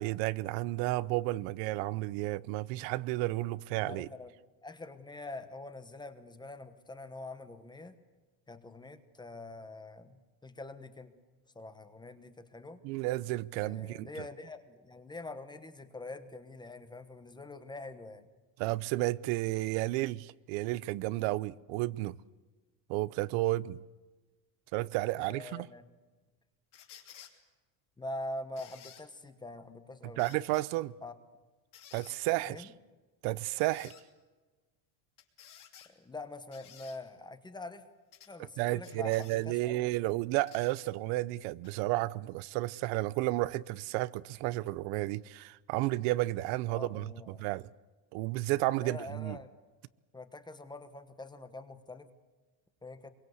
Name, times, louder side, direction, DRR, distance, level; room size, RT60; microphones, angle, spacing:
voice 1, 0.0-4.1 12.8-14.1 18.6-22.2 22.9-23.8 24.7-25.7 30.2-30.9 31.9-32.7 33.2-33.9 38.6-47.7 48.1-49.4, right 18 dB, 85° right, 0.8 m, -32 dB
voice 2, 3.9-4.3 4.6-7.9 8.5-11.1 11.5-12.8 13.5-18.3 25.1-25.9 28.0-30.3 31.0-31.1 32.4-32.7 35.9-37.8 38.3-39.9 46.7-47.5 48.8-49.5 50.1-52.1 52.8-53.1, left 2 dB, 10° left, 1.1 m, -45 dB
sound 1, 26.7-27.3 28.6-29.0 30.2-30.6 31.7-32.2 33.4-34.0 35.2-35.9 36.5-37.0 38.1-38.3 38.8-39.4 40.5-40.7 41.6-41.7, left 10 dB, 40° left, 2.9 m, -54 dB
24.5 x 23.0 x 8.0 m
cardioid pair, 175°, 46 cm